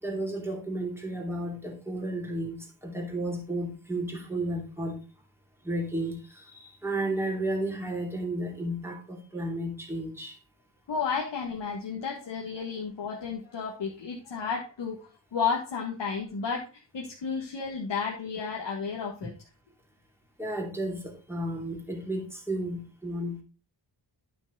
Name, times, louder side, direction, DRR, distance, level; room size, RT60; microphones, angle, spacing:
voice 1, 0.0-5.0 5.6-10.4 20.4-23.4, right 1 dB, 5° right, 1 dB, 2.6 m, -33 dB
voice 2, 10.9-19.3, left 5 dB, 80° left, -2 dB, 1.7 m, -32 dB
9.4 x 6.0 x 3.9 m, 0.31 s
wide cardioid pair, 90°, 42 cm